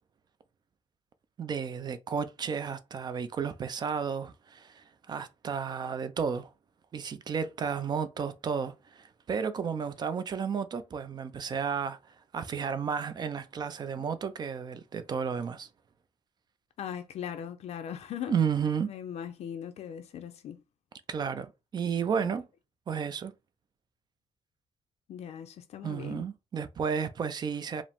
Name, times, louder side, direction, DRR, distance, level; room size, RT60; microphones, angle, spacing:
voice 1, 1.4-6.5 6.9-15.7 18.3-18.9 21.1-22.5 22.9-23.3 25.8-27.8, right 6 dB, 35° right, 0.4 m, -32 dB
voice 2, 16.8-18.4 18.8-20.6 25.1-26.3, left 9 dB, 65° left, 0.5 m, -39 dB
4.9 x 2.0 x 3.5 m
wide cardioid pair, 165°, 12 cm